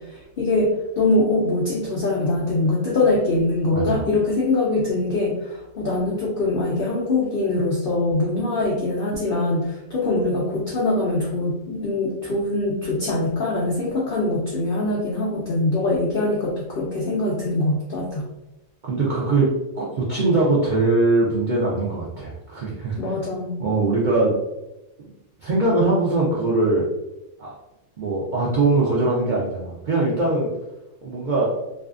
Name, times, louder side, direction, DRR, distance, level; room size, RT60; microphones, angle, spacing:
voice 1, 0.1-18.3 23.0-23.6, left 2 dB, 75° left, -5 dB, 0.5 m, -23 dB
voice 2, 3.7-4.0 18.8-23.0 23.6-24.3 25.4-26.9 27.4-27.6 28.0-30.5 31.0-31.6, right 2 dB, 80° right, -5 dB, 0.4 m, -21 dB
2.6 x 2.3 x 2.4 m, 0.93 s
omnidirectional pair, 1.5 m